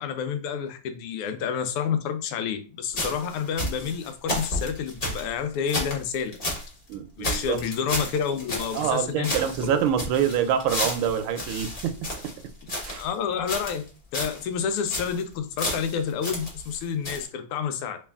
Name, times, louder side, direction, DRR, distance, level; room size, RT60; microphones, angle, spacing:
voice 1, 0.0-6.3 7.2-9.8 13.0-13.9 14.1-18.0, left 7 dB, 90° left, 1.5 m, -29 dB
sound 1, 2.9-6.7 6.9-7.0 7.2-9.0 9.2-13.1 13.5-13.9 14.1-14.4 14.7-15.2 15.6-16.8 17.0-17.2, left 1 dB, 35° left, 1.1 m, -32 dB
voice 2, 6.9-7.6 8.7-11.9 12.2-12.3 12.8-13.0, right 9 dB, 80° right, 1.4 m, -26 dB
3.2 x 3.1 x 3.4 m
omnidirectional pair, 2.4 m